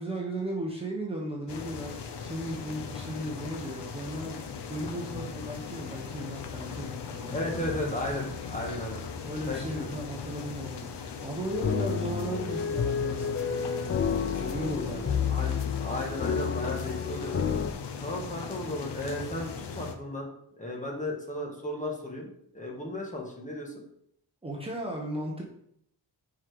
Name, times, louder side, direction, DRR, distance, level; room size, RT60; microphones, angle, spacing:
voice 1, 0.0-7.7 9.2-15.1 24.4-25.4, right 1 dB, 15° right, -2 dB, 1.0 m, -36 dB
sound 1, 1.5-19.9, left 6 dB, 80° left, 0.8 m, -39 dB
voice 2, 7.3-9.0 9.5-9.9 15.3-17.5 18.0-20.3 20.6-23.8, left 1 dB, 20° left, -1 dB, 1.4 m, -35 dB
sound 2, 11.5-17.7, left 6 dB, 35° left, 0.4 m, -30 dB
5.7 x 4.8 x 4.8 m, 0.70 s
wide cardioid pair, 150°, 41 cm